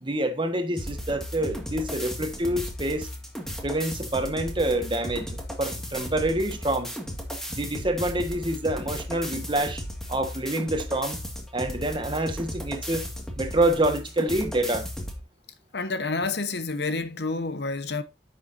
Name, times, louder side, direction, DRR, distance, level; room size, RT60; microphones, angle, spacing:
voice 1, 0.0-3.1 3.6-7.0 7.5-9.8 10.1-11.2 11.5-13.1 13.4-14.9, right 1 dB, 30° right, 1.4 m, -27 dB
sound 1, 0.8-15.2, equal, 5° left, 1.9 m, -35 dB
voice 2, 15.7-18.0, left 3 dB, 65° left, 1.1 m, -29 dB
10.5 x 6.7 x 2.7 m
head